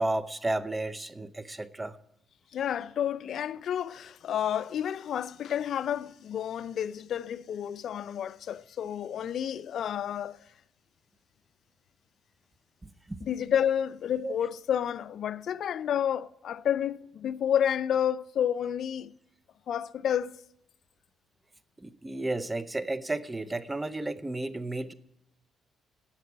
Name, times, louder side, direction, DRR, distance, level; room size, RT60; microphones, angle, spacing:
voice 1, 0.0-2.0 12.8-13.3 14.2-14.3 21.8-24.9, right 2 dB, 15° right, 0.7 m, -33 dB
voice 2, 2.5-10.4 13.3-19.1 19.7-20.4, left 9 dB, 65° left, 0.4 m, -30 dB
11.0 x 7.3 x 9.6 m
cardioid pair, 90°, 0 cm